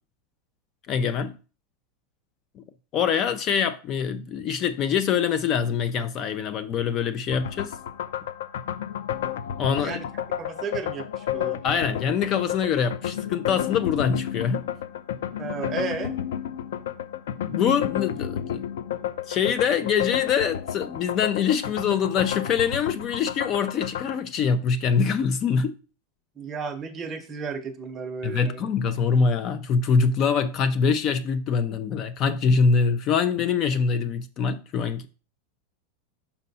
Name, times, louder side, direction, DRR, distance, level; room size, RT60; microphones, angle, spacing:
voice 1, 0.9-1.3 2.6-2.7 2.9-7.8 9.6-10.0 11.6-14.6 17.5-18.7 19.3-25.8 28.2-35.1, left 6 dB, 30° left, 0.5 m, -24 dB
sound 1, 7.3-24.2, left 10 dB, 85° left, 0.6 m, -31 dB
voice 2, 9.7-10.0 10.4-11.6 15.4-16.1 26.4-28.7, right 5 dB, 20° right, 0.9 m, -33 dB
5.6 x 5.5 x 4.1 m
supercardioid pair, 155°, 0 cm